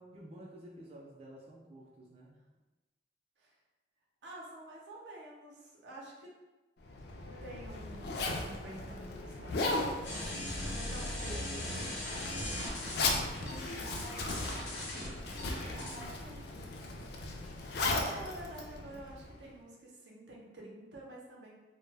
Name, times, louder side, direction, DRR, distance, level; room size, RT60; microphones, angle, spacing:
voice 1, 0.1-2.4 10.1-13.0 13.6-14.3 15.5-17.4, right 1 dB, 35° right, -4 dB, 0.3 m, -53 dB
voice 2, 4.2-6.3 7.4-9.9 10.7-12.0 14.5-15.2 16.2-16.5 17.8-21.5, right 1 dB, 85° right, -3 dB, 0.6 m, -49 dB
Zipper (clothing), 6.8-19.5, left 2 dB, 60° left, 0.3 m, -37 dB
sound 1, 10.0-16.1, left 1 dB, 85° left, 0.7 m, -39 dB
2.1 x 2.0 x 3.2 m, 1.1 s
head